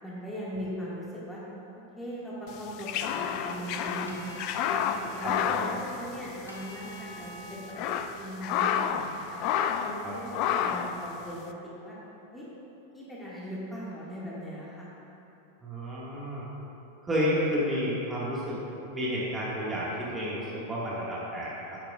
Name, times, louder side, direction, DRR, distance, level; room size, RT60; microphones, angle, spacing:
voice 1, 0.0-1.4 2.0-4.3 4.6-9.4 9.8-12.0 12.3-12.5 12.9-14.9, equal, 5° left, -7 dB, 2.0 m, -39 dB
sound 1, 2.6-6.6 6.9-7.0 7.5-9.1 9.4-10.0 10.3-11.0, left 8 dB, 40° left, 0.4 m, -29 dB
sound 2, 3.8-10.2, right 1 dB, 90° left, 1.0 m, -49 dB
voice 2, 5.2-5.6 10.0-10.4 15.6-16.4 17.0-18.6 18.8-21.8, equal, 15° right, -7 dB, 1.9 m, -31 dB
11.0 x 8.9 x 2.5 m, 3.0 s
figure-of-eight pair, 90°, 0 cm